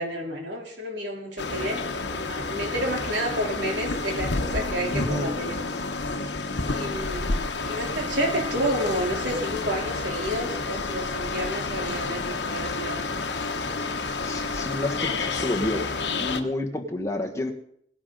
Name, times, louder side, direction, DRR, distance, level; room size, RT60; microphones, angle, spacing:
voice 1, 0.0-1.8 2.1-5.8 6.6-13.0, right 1 dB, 80° right, 0 dB, 3.4 m, -30 dB
sound 1, 1.4-16.4, left 3 dB, 75° left, 1.0 m, -30 dB
voice 2, 4.9-5.3 14.2-15.8 16.2-17.5, left 1 dB, 20° left, 1 dB, 1.5 m, -29 dB
18.0 x 10.5 x 3.9 m, 0.69 s
head